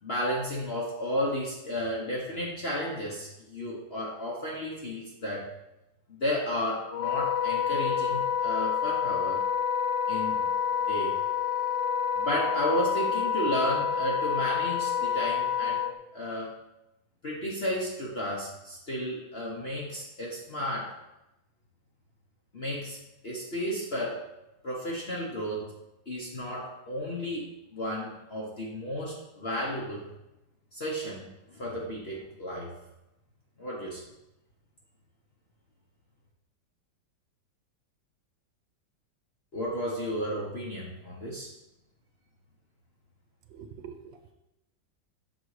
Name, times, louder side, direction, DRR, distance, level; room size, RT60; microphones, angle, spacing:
voice 1, 0.0-5.5 6.1-9.5 10.1-10.4 10.9-11.2 12.2-15.8 16.1-16.5 17.2-20.9 22.5-23.0 23.2-24.2 24.6-25.7 26.1-30.1 30.7-32.7 33.6-34.0 39.5-41.5, equal, 40° left, -4 dB, 0.9 m, -33 dB
Wind instrument woodwind instrument, 6.9-15.9, left 7 dB, 70° left, 1.1 m, -28 dB
voice 2, 43.5-44.3, right 7 dB, 75° right, 7 dB, 1.3 m, -45 dB
6.7 x 4.1 x 4.8 m, 0.92 s
omnidirectional pair, 2.2 m